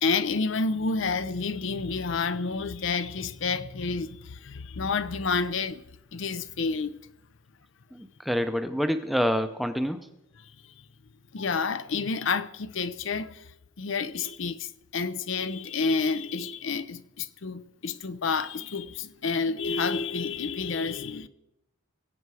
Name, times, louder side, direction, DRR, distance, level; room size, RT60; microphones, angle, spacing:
voice 1, 0.0-5.8 6.1-7.0 10.4-10.5 11.3-13.5 13.8-21.3, left 4 dB, 65° left, 0.6 m, -29 dB
voice 2, 7.9-10.1, equal, ahead, 0.6 m, -27 dB
21.5 x 8.1 x 4.8 m
head